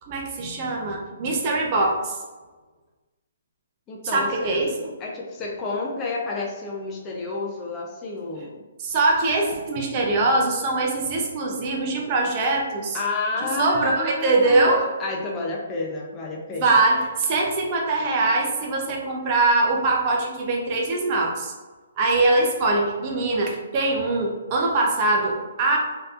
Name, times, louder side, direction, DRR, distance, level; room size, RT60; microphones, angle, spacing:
voice 1, 0.0-2.2 4.1-4.9 8.8-13.0 13.4-14.9 16.5-21.5 22.0-25.8, right 2 dB, 35° right, 0 dB, 0.6 m, -22 dB
voice 2, 3.9-4.6 5.0-8.6 12.9-16.8, left 3 dB, 20° left, -2 dB, 0.5 m, -30 dB
3.2 x 2.8 x 2.4 m, 1.2 s
hypercardioid pair, 150°, 0 cm